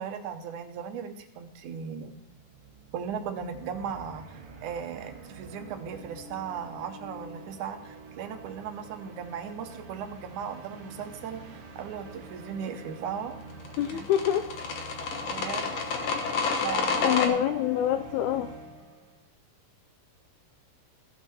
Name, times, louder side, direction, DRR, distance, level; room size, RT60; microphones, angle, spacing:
voice 1, 0.0-2.1 2.9-13.4 13.9-14.0 15.2-15.7 16.6-17.6, right 7 dB, 75° right, 6 dB, 2.2 m, -37 dB
sound 1, 1.5-1.6 1.7-19.2, right 2 dB, 55° right, 1.7 m, -46 dB
sound 2, 13.7-17.3, left 5 dB, 60° left, 2.0 m, -29 dB
voice 2, 13.8-14.5 17.0-18.5, left 11 dB, 80° left, 8 dB, 1.7 m, -26 dB
16.0 x 6.0 x 4.1 m, 0.81 s
omnidirectional pair, 3.8 m